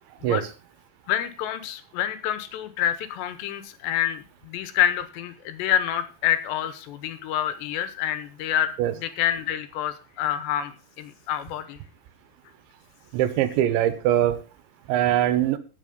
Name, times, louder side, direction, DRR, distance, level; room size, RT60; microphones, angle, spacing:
voice 1, 1.1-11.8, left 11 dB, 80° left, 12 dB, 3.1 m, -27 dB
voice 2, 13.1-14.4 14.9-15.6, right 12 dB, 80° right, 12 dB, 3.3 m, -22 dB
16.5 x 6.0 x 5.3 m, 0.33 s
omnidirectional pair, 5.3 m